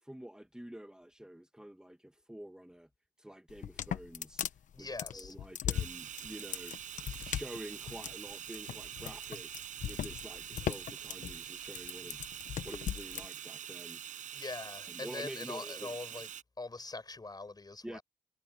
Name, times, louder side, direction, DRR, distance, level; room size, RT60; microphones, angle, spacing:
voice 1, 0.0-2.9 3.2-4.4 4.8-4.9 5.1-12.3 12.6-14.3 14.9-16.0 17.8-18.0, right 1 dB, 5° right, 2.4 m, -48 dB
sound 1, 3.5-13.3, left 9 dB, 85° left, 1.2 m, -38 dB
voice 2, 4.7-5.4 14.3-16.3 16.6-18.0, left 3 dB, 30° left, 7.0 m, -43 dB
Bathtub (filling or washing), 5.7-16.4, right 10 dB, 90° right, 7.0 m, -45 dB
cardioid pair, 60°, 13 cm